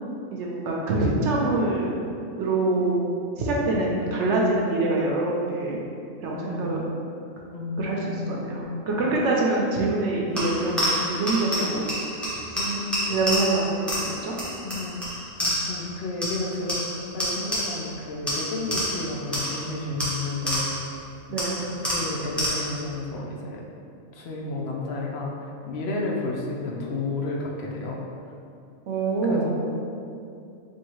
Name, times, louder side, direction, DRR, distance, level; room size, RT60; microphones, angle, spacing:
voice 1, 0.3-1.9 2.4-3.0 3.4-5.8 6.2-6.8 7.8-11.8 13.1-14.3 21.3-21.5 28.9-29.5, right 2 dB, 65° right, -3 dB, 0.9 m, -25 dB
voice 2, 3.7-4.0 6.3-6.8 7.5-8.9 10.2-10.5 12.5-13.2 14.6-15.0 15.4-20.8 21.8-23.6 24.1-28.0 29.2-29.5, left 2 dB, 65° left, -2 dB, 0.7 m, -32 dB
sound 1, 10.4-15.9 16.2-17.9 18.3-21.0 21.4-22.9, equal, ahead, 0.5 m, -29 dB
4.5 x 2.9 x 3.0 m, 2.5 s
omnidirectional pair, 1.4 m